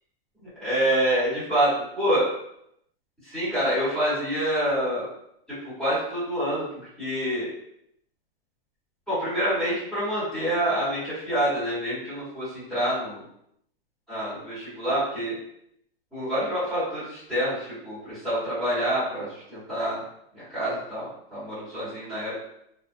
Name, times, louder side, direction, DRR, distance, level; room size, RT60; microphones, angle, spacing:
voice 1, 0.4-2.3 3.2-5.1 5.8-6.7 7.0-7.5 9.1-13.2 14.1-15.3 16.1-20.0 20.3-22.3, right 1 dB, 5° left, -14 dB, 1.0 m, -27 dB
2.3 x 2.1 x 2.5 m, 0.75 s
supercardioid pair, 175°, 29 cm